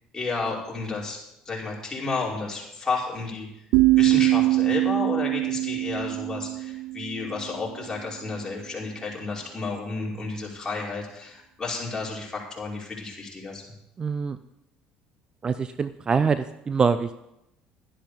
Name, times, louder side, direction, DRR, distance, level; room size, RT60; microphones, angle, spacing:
voice 1, 0.1-1.2 1.5-3.5 4.0-13.6, left 4 dB, 20° left, -4 dB, 5.4 m, -32 dB
sound 1, 3.7-7.6, right 18 dB, 75° right, 0.4 m, -23 dB
voice 2, 14.0-14.4 15.4-17.2, right 5 dB, 30° right, 12 dB, 0.6 m, -24 dB
12.5 x 10.5 x 5.2 m, 0.84 s
supercardioid pair, 90°, 3 cm